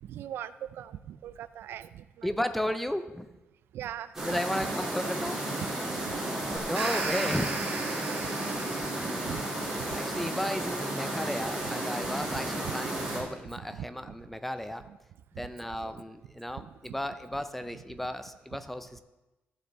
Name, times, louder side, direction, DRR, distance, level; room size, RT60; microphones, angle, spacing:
voice 1, 0.0-2.3 3.7-4.1 5.9-6.3 9.2-9.5 9.8-9.9 12.6-12.7 13.1-13.2 13.7-14.1 15.8-16.0 16.6-16.7, right 11 dB, 70° right, 14 dB, 0.4 m, -41 dB
voice 2, 2.2-3.3 4.2-5.4 6.3-8.0 9.9-14.8 15.4-19.0, left 1 dB, 5° left, 10 dB, 0.4 m, -34 dB
sound 1, 4.1-13.2, right 1 dB, 10° right, 3.0 m, -33 dB
sound 2, 6.6-9.7, right 3 dB, 50° right, 1.4 m, -36 dB
14.5 x 6.7 x 3.4 m, 1.0 s
cardioid pair, 175°, 4 cm